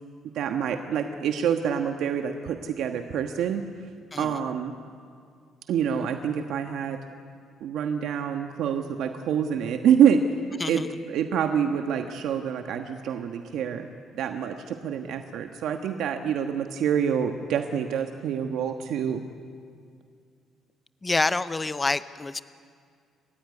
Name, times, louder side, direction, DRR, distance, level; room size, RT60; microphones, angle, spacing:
voice 1, 0.3-3.6 4.2-4.7 5.7-7.0 7.6-10.2 10.7-13.9 14.1-19.2, right 8 dB, 70° right, 6 dB, 1.3 m, -26 dB
voice 2, 21.0-22.4, left 3 dB, 15° left, 14 dB, 0.6 m, -27 dB
28.5 x 15.0 x 9.6 m, 2.2 s
cardioid pair, 145°, 0 cm